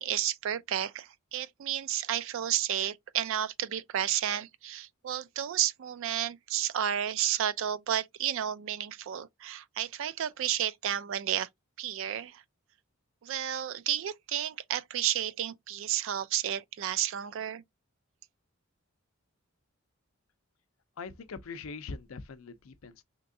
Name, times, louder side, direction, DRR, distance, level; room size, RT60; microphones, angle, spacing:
voice 1, 0.0-11.5 11.8-12.4 13.2-17.6, right 10 dB, 65° right, 0.3 m, -32 dB
voice 2, 21.0-23.0, left 4 dB, 80° left, 0.5 m, -42 dB
3.4 x 2.9 x 2.5 m
head